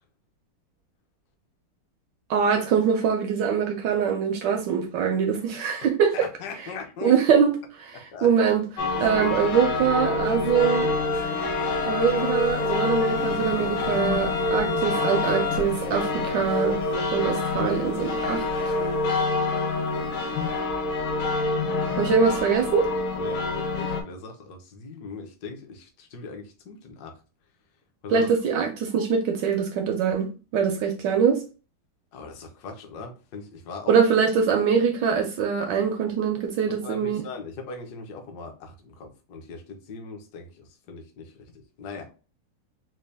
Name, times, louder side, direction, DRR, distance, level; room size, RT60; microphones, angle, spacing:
voice 1, 2.3-6.1 7.0-7.5 7.8-8.6 9.0-10.9 11.8-16.8 17.1-18.7 22.0-22.9 28.1-31.4 33.9-37.2, right 6 dB, 80° right, 1.0 m, -23 dB
voice 2, 6.1-7.1 7.9-8.3 23.2-27.2 28.0-28.3 32.1-33.9 36.7-42.1, left 4 dB, 65° left, 1.1 m, -40 dB
sound 1, 8.8-24.0, left 2 dB, 85° left, 1.7 m, -27 dB
sound 2, 10.5-15.6, left 8 dB, 40° left, 0.7 m, -32 dB
4.1 x 2.2 x 3.3 m
omnidirectional pair, 2.4 m